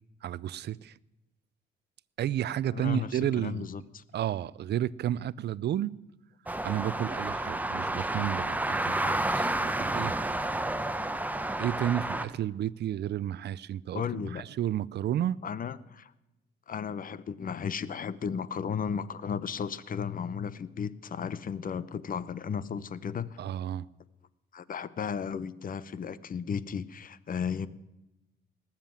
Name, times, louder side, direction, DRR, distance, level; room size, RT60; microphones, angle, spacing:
voice 1, 0.2-0.9 2.2-3.7 4.1-5.9 6.6-10.3 11.6-15.4 23.4-23.9, right 11 dB, 60° right, 0.5 m, -32 dB
voice 2, 2.7-4.0 13.9-14.5 15.4-16.1 16.7-23.4 24.5-27.7, left 7 dB, 45° left, 0.8 m, -34 dB
sound 1, 6.5-12.2, right 1 dB, 10° right, 1.0 m, -30 dB
19.0 x 7.5 x 8.9 m
cardioid pair, 90°, 20 cm